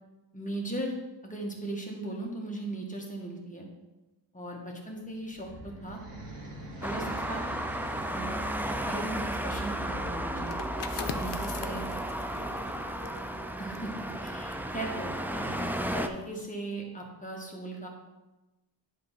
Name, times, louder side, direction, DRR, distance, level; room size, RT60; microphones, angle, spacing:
voice 1, 0.3-0.9 1.2-3.6 4.3-6.0 6.8-7.4 8.1-8.4 8.8-10.6 11.1-11.8 13.6-15.7 15.9-17.9, right 1 dB, 20° left, -1 dB, 1.5 m, -38 dB
sound 1, 5.0-11.0, right 1 dB, 70° right, 2.0 m, -46 dB
Traffic noise roadway noise, 6.8-16.1, right 1 dB, 5° right, 0.4 m, -33 dB
sound 2, 10.5-15.9 16.2-16.5, left 7 dB, 80° left, 0.7 m, -43 dB
voice 2, 11.6-13.6, equal, 45° right, 1 dB, 1.2 m, -51 dB
10.0 x 3.5 x 5.6 m, 1.1 s
wide cardioid pair, 115°, 43 cm